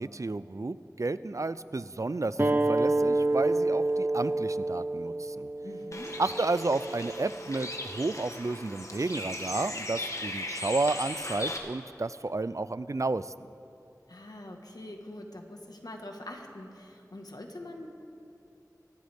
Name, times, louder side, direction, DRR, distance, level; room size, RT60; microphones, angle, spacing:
voice 1, 0.0-5.5 6.2-13.3, right 3 dB, 55° right, 15 dB, 0.4 m, -31 dB
sound 1, 2.4-7.5, right 2 dB, 35° right, 0.7 m, -28 dB
voice 2, 5.6-6.1 14.1-17.9, left 1 dB, 80° left, 2 dB, 1.5 m, -44 dB
Bird, 5.9-11.6, left 1 dB, 50° left, 1.4 m, -38 dB
24.0 x 11.5 x 3.5 m, 2.8 s
wide cardioid pair, 40°, 7 cm